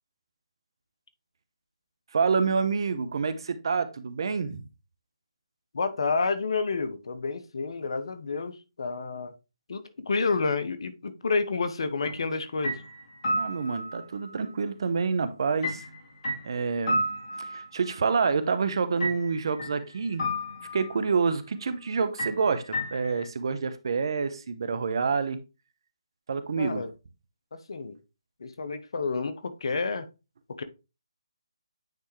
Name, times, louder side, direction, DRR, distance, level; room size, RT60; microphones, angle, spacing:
voice 1, 2.1-4.6 13.4-15.8 16.4-17.0 17.3-20.3 20.7-25.4 26.3-26.8, right 5 dB, 55° right, 0.9 m, -27 dB
voice 2, 5.7-9.3 9.7-12.8 26.6-26.9 27.7-28.0 28.4-30.1 30.6-30.7, left 4 dB, 60° left, 1.0 m, -29 dB
sound 1, 12.0-12.3 12.6-14.0 15.6-17.9 19.0-19.8 20.2-21.0 22.2-23.3, equal, 45° left, 2.9 m, -32 dB
9.0 x 3.5 x 3.2 m
figure-of-eight pair, 155°, 3 cm